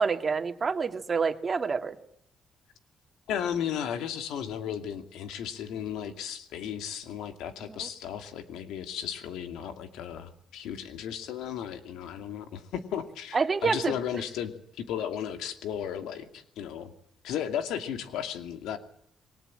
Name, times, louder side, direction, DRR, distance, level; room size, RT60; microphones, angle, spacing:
voice 1, 0.0-2.0 7.6-7.9 13.3-14.0, right 5 dB, 35° right, 6 dB, 2.3 m, -27 dB
voice 2, 3.3-16.9 17.2-18.8, left 9 dB, 90° left, 8 dB, 2.4 m, -35 dB
22.5 x 19.0 x 8.9 m, 0.72 s
cardioid pair, 90°, 0 cm